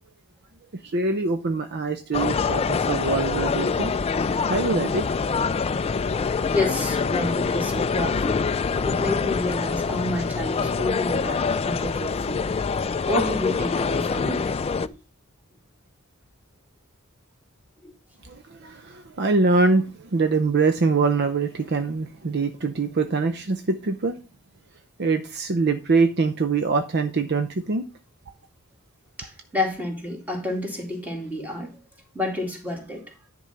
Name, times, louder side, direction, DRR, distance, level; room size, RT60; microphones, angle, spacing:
voice 1, 0.8-3.9 4.5-5.1 5.6-5.7 18.2-24.2 25.0-27.8, right 3 dB, 50° right, 0.6 m, -24 dB
sound 1, 2.1-14.9, left 5 dB, 25° left, 0.3 m, -25 dB
voice 2, 6.5-8.4 8.8-12.5 13.0-14.4 14.8-14.9 17.8-17.9 29.2-31.8 32.1-33.1, left 1 dB, 10° right, 2.4 m, -29 dB
10.5 x 3.9 x 5.7 m
head